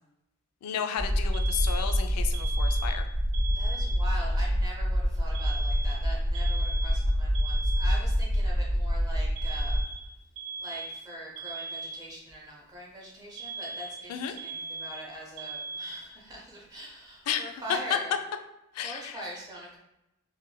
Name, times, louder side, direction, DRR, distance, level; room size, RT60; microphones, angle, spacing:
voice 1, 0.6-3.0 14.1-14.3 17.3-17.4 18.7-19.2, left 8 dB, 85° left, 6 dB, 0.3 m, -33 dB
sound 1, 1.0-9.8, equal, 65° left, 1.4 m, -26 dB
Alarm, 1.3-4.3 5.3-8.3 9.4-12.3 13.4-16.3, right 4 dB, 65° right, 0.5 m, -39 dB
voice 2, 3.5-10.1 10.6-18.2 18.8-19.8, right 1 dB, 15° right, -3 dB, 0.6 m, -42 dB
3.0 x 2.5 x 2.2 m, 0.89 s
head